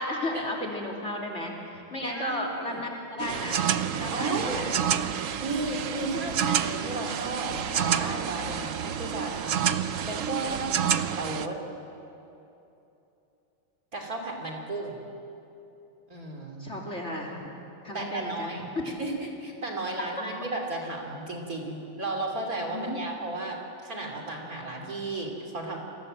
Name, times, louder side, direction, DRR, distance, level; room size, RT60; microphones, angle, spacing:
voice 1, 0.0-3.7 4.0-4.8 6.1-6.2 8.5-8.6 10.6-10.9 16.6-17.4 17.8-18.8 22.7-23.0, left 1 dB, 30° left, 1 dB, 3.2 m, -34 dB
voice 2, 2.0-2.8 3.9-4.6 5.4-9.7 10.0-10.9 11.2-11.6 13.9-15.0 16.1-16.7 17.9-25.8, right 2 dB, 40° right, 1 dB, 3.3 m, -34 dB
sound 1, 3.2-11.5, right 8 dB, 75° right, 0.7 m, -29 dB
29.0 x 21.0 x 7.6 m, 2.9 s
omnidirectional pair, 2.4 m